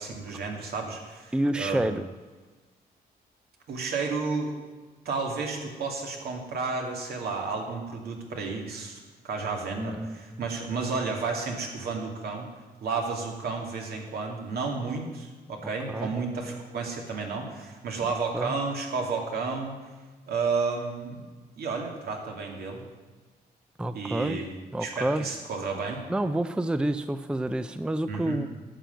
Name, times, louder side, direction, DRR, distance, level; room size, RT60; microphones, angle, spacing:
voice 1, 0.0-2.0 3.7-4.5 5.0-12.5 12.8-19.8 20.3-21.3 21.6-22.8 23.9-24.5 24.8-26.0 28.1-28.4, right 4 dB, 75° right, 1 dB, 2.4 m, -32 dB
voice 2, 1.3-2.0 9.8-10.4 15.9-16.1 18.3-18.5 23.8-24.4 24.7-25.3 26.1-28.5, right 1 dB, 5° right, 11 dB, 0.4 m, -28 dB
11.5 x 6.0 x 9.2 m, 1.3 s
cardioid pair, 125°, 16 cm